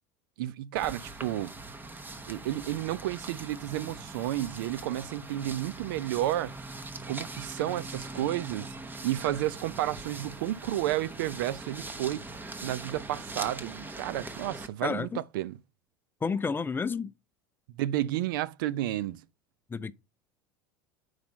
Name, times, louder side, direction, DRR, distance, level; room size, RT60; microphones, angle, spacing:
voice 1, 0.4-1.5 2.3-6.5 7.1-8.7 9.0-12.2 12.6-15.1 15.3-15.6 17.8-19.2, right 14 dB, 75° right, 0.5 m, -31 dB
sound 1, 0.8-14.7, right 2 dB, 15° right, 1.0 m, -42 dB
voice 2, 14.8-15.2 16.2-17.1 19.7-19.9, left 5 dB, 20° left, 0.5 m, -30 dB
5.7 x 4.8 x 5.2 m
hypercardioid pair, 90°, 11 cm